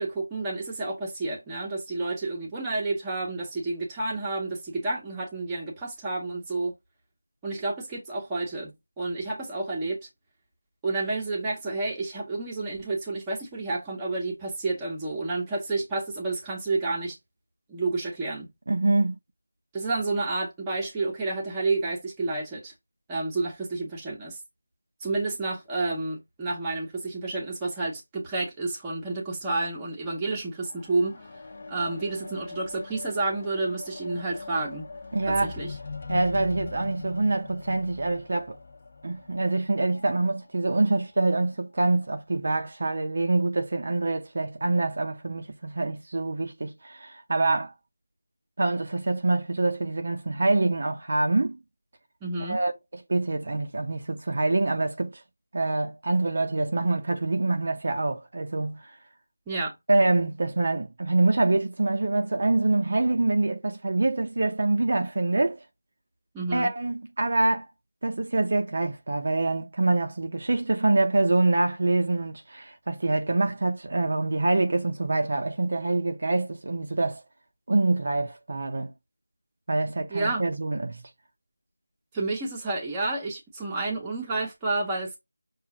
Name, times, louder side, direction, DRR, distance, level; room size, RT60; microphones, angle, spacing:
voice 1, 0.0-6.7 7.4-10.1 10.8-17.2 17.7-18.5 19.7-22.7 23.1-24.4 25.0-31.3 31.7-34.9 35.3-35.7 52.2-52.6 59.5-59.8 66.3-66.7 80.1-80.4 82.1-85.2, right 3 dB, 10° right, 0.9 m, -30 dB
voice 2, 18.7-19.2 35.1-35.6 36.1-38.6 39.0-47.7 48.6-51.6 52.5-52.7 53.1-55.2 55.5-58.9 59.9-65.6 66.5-67.7 68.0-77.2 77.7-78.9 79.7-81.0, right 2 dB, 45° right, 0.6 m, -25 dB
sound 1, 30.6-40.1 40.9-41.1, left 4 dB, 35° left, 0.8 m, -41 dB
6.1 x 2.4 x 2.8 m
figure-of-eight pair, 175°, 0 cm